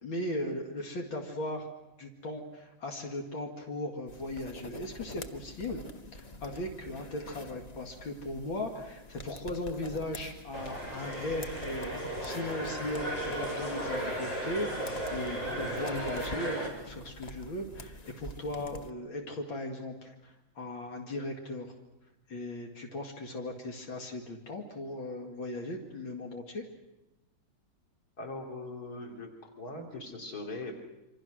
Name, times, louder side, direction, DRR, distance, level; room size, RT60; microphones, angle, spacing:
voice 1, 0.0-1.7 2.0-5.8 6.1-21.7 22.3-26.6, left 1 dB, 90° left, 2 dB, 3.0 m, -38 dB
sound 1, 4.1-18.9, left 2 dB, 35° left, 0.6 m, -46 dB
sound 2, 10.5-16.7, right 1 dB, 70° left, 4.9 m, -35 dB
voice 2, 28.2-30.7, left 2 dB, 50° left, 2 dB, 3.6 m, -41 dB
27.0 x 25.0 x 6.3 m, 0.95 s
omnidirectional pair, 2.1 m